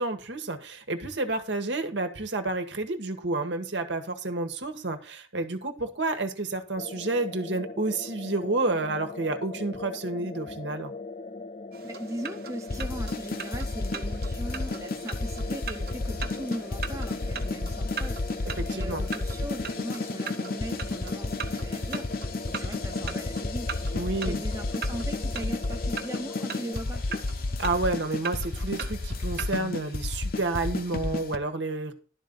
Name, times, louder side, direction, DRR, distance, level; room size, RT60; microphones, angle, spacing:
voice 1, 0.0-10.9 18.6-19.0 23.9-24.4 27.6-31.9, right 2 dB, 80° right, 1.4 m, -30 dB
sound 1, 6.8-26.7, left 3 dB, 35° left, 0.4 m, -40 dB
sound 2, 11.7-29.7, right 6 dB, 55° right, 0.9 m, -41 dB
voice 2, 11.8-27.2, right 1 dB, 15° right, 0.7 m, -39 dB
sound 3, 12.7-31.4, left 2 dB, 55° left, 0.8 m, -32 dB
12.0 x 4.0 x 7.1 m
head